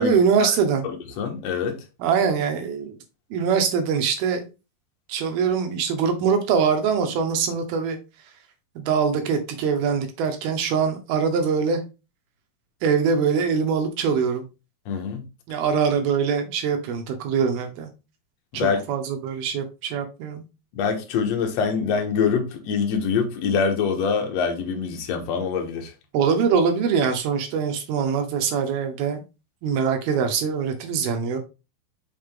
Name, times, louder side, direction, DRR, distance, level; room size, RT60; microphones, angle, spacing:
voice 1, 0.0-0.8 2.0-3.0 3.3-4.5 5.1-8.0 8.8-11.8 12.8-14.5 15.5-17.9 18.5-20.4 26.1-29.2 29.6-31.4, right 6 dB, 75° right, 2.7 m, -23 dB
voice 2, 0.8-1.8 14.8-15.3 18.5-18.8 20.7-25.9, left 6 dB, 65° left, 1.8 m, -25 dB
5.8 x 5.1 x 3.6 m
omnidirectional pair, 4.6 m